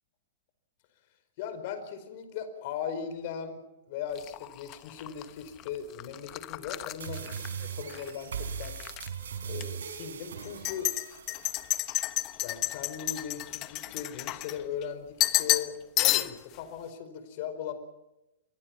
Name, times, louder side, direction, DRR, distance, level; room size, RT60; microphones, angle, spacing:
voice 1, 1.4-8.8 9.4-10.9 12.4-17.7, left 7 dB, 50° left, 10 dB, 4.8 m, -38 dB
sound 1, 4.1-8.1 8.4-9.1 9.5-9.6 10.4-14.8 15.2-15.7 16.0-16.5, left 17 dB, 35° left, 1.0 m, -31 dB
sound 2, 7.0-12.0, right 7 dB, 80° right, 4.2 m, -39 dB
28.0 x 22.5 x 6.0 m, 0.92 s
hypercardioid pair, 125°, 0 cm